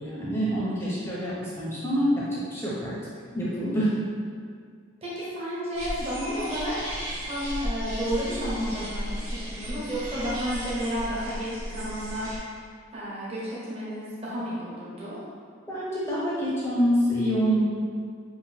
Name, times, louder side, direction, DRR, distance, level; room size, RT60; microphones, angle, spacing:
voice 1, 0.0-3.0 3.3-3.9 15.7-17.6, equal, 10° left, -7 dB, 0.5 m, -26 dB
voice 2, 5.0-6.8 7.2-12.3 12.9-15.2, equal, 30° right, -8 dB, 0.9 m, -32 dB
sound 1, 5.7-12.4, equal, 75° right, 1.4 m, -35 dB
4.9 x 2.5 x 3.3 m, 2.1 s
head